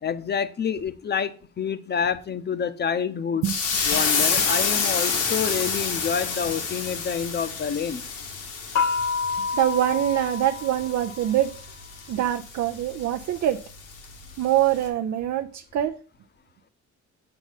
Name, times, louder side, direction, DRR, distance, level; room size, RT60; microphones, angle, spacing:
voice 1, 0.0-3.5 3.8-8.0, left 7 dB, 35° left, 0.7 m, -28 dB
sound 1, 3.4-14.3 14.7-14.9, left 5 dB, 85° left, 1.6 m, -28 dB
sound 2, 8.8-11.5, left 5 dB, 65° left, 0.9 m, -28 dB
voice 2, 9.5-11.5 12.1-13.6 14.4-16.0, right 12 dB, 65° right, 0.5 m, -24 dB
6.7 x 5.9 x 4.0 m
cardioid pair, 90°, 30 cm